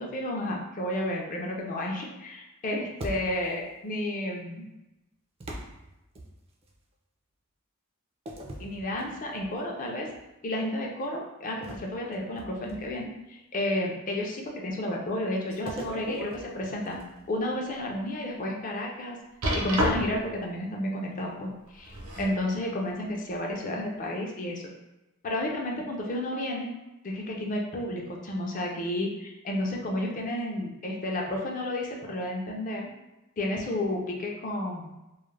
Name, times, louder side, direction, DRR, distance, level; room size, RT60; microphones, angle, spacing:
voice 1, 0.0-4.7 8.6-10.1 10.4-17.0 17.3-19.2 19.5-24.6 25.2-26.8 27.0-32.9 33.4-34.9, left 1 dB, 40° left, 0 dB, 0.4 m, -32 dB
sound 1, 3.0-3.7 5.4-6.8 8.3-9.6 10.1-10.3 11.6-13.1 15.7-17.3, equal, 25° right, 0.3 m, -42 dB
sound 2, 15.5-16.3 16.8-17.0 17.5-17.6 19.4-20.3 21.7-22.4 23.3-23.4, equal, 70° right, 0.7 m, -30 dB
2.3 x 2.0 x 3.1 m, 0.98 s
head